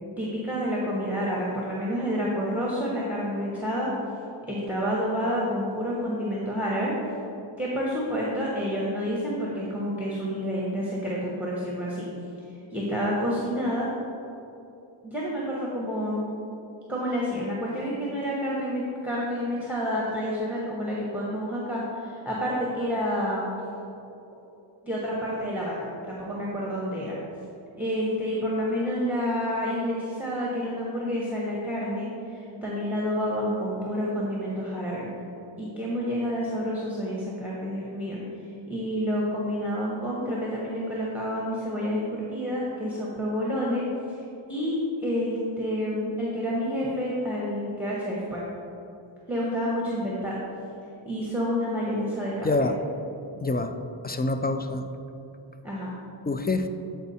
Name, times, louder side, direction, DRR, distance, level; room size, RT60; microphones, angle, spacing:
voice 1, 0.0-3.9 4.5-6.9 7.6-12.1 12.7-13.9 15.0-16.3 16.9-23.5 24.8-27.2 27.8-35.0 35.6-38.2 38.7-48.4 49.3-50.4 51.0-52.5 55.6-56.0, equal, 5° right, -5 dB, 1.0 m, -29 dB
voice 2, 52.4-52.8 53.4-53.8 54.0-54.9 56.3-56.7, left 2 dB, 20° left, 7 dB, 0.3 m, -26 dB
8.0 x 4.6 x 4.2 m, 2.9 s
wide cardioid pair, 55°, 49 cm